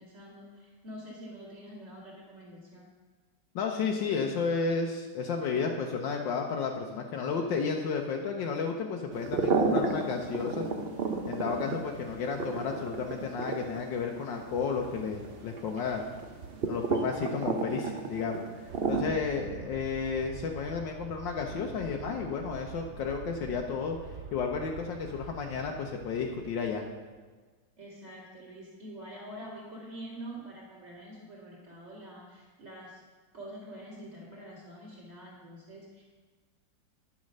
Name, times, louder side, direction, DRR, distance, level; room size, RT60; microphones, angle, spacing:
voice 1, 0.0-2.8 19.3-19.7 27.8-33.0 33.3-36.0, right 1 dB, 20° right, -6 dB, 2.8 m, -46 dB
voice 2, 3.5-10.7 11.3-16.0 16.7-18.4 18.9-24.0 24.3-26.8, left 5 dB, 75° left, 1 dB, 1.5 m, -32 dB
sound 1, 9.1-19.0, right 4 dB, 45° right, 0.8 m, -33 dB
Aircraft, 18.7-27.1, right 7 dB, 75° right, 0.6 m, -46 dB
10.5 x 7.3 x 6.5 m, 1.4 s
omnidirectional pair, 2.0 m